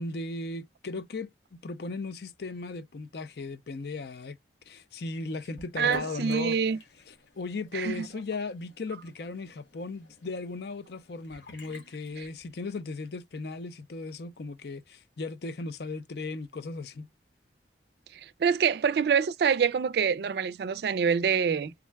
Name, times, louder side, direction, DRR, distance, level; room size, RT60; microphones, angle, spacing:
voice 1, 0.0-4.4 4.7-6.6 7.4-17.1, left 3 dB, 65° left, 0.5 m, -37 dB
Sink (filling or washing) / Bathtub (filling or washing), 5.6-12.9, left 2 dB, 85° left, 1.4 m, -51 dB
voice 2, 5.8-6.8 7.7-8.1 12.2-12.3 18.1-21.7, right 6 dB, 65° right, 0.3 m, -26 dB
3.5 x 2.2 x 3.3 m
head